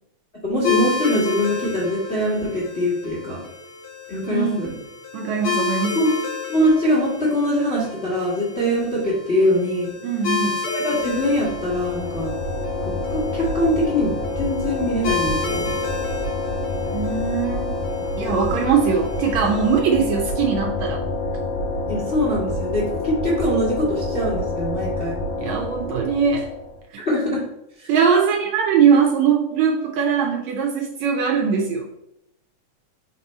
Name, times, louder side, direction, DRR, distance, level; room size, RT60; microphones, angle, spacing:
voice 1, 0.4-3.4 4.1-4.8 5.9-6.1 6.5-9.9 10.7-12.3 12.8-15.8 18.2-18.5 21.9-25.1 27.0-27.4, equal, 40° left, -5 dB, 0.9 m, -23 dB
sound 1, 0.6-19.8, left 4 dB, 65° left, 1.3 m, -31 dB
voice 2, 4.3-4.7 5.1-6.1 10.0-10.6 16.9-17.7 18.2-21.0 25.4-26.5 27.9-31.9, right 6 dB, 75° right, 1 dB, 1.7 m, -21 dB
sound 2, 11.0-26.8, left 2 dB, 85° left, 3.2 m, -27 dB
5.9 x 4.1 x 4.3 m, 0.82 s
omnidirectional pair, 3.7 m